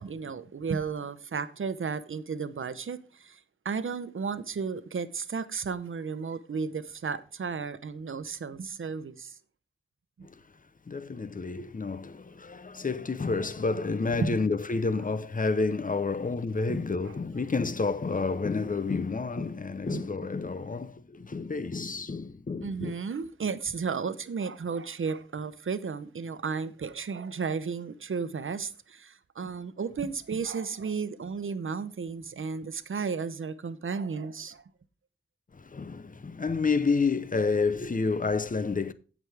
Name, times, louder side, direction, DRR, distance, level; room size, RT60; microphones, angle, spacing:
voice 1, 0.0-9.4 10.2-10.3 14.2-14.4 16.7-16.8 17.1-17.2 19.9-20.1 22.6-34.6, right 5 dB, 80° right, 0.8 m, -34 dB
voice 2, 10.9-22.9 35.5-38.9, left 4 dB, 40° left, 0.7 m, -29 dB
16.0 x 6.1 x 3.4 m
wide cardioid pair, 85°, 21 cm